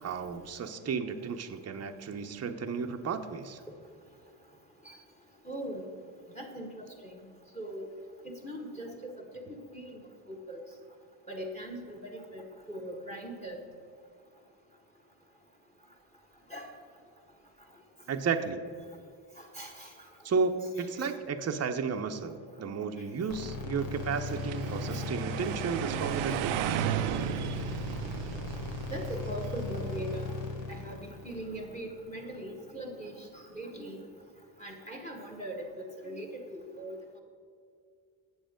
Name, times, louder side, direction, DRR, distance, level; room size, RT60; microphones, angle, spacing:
voice 1, 0.0-3.6 18.1-18.6 20.2-26.9, right 5 dB, 30° right, 6 dB, 0.7 m, -33 dB
voice 2, 5.4-5.8 6.3-7.2 7.5-7.9 8.4-10.0 10.3-10.6 11.3-13.6 16.5-16.7 19.4-20.1 20.8-21.1 24.9-25.0 27.1-27.5 28.9-30.4 30.7-34.0 34.6-37.0, right 1 dB, 15° left, 2 dB, 1.5 m, -41 dB
sound 1, 23.3-32.5, left 4 dB, 65° left, 1.3 m, -38 dB
sound 2, 24.0-30.1, right 11 dB, 70° right, 0.5 m, -35 dB
7.9 x 7.0 x 5.1 m, 2.3 s
supercardioid pair, 50°, 48 cm